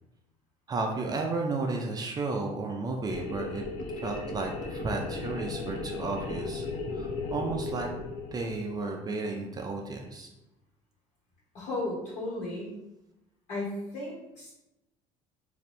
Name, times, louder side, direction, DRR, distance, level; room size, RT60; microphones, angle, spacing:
voice 1, 0.7-3.6 4.0-6.7 6.9-7.9 8.3-10.3, right 3 dB, 30° right, 2 dB, 0.4 m, -33 dB
sound 1, 3.1-8.8, left 3 dB, 85° left, 0.5 m, -36 dB
voice 2, 11.5-12.8 13.5-14.5, left 2 dB, 60° left, -8 dB, 1.4 m, -35 dB
3.2 x 2.6 x 4.1 m, 0.94 s
cardioid pair, 115°, 14 cm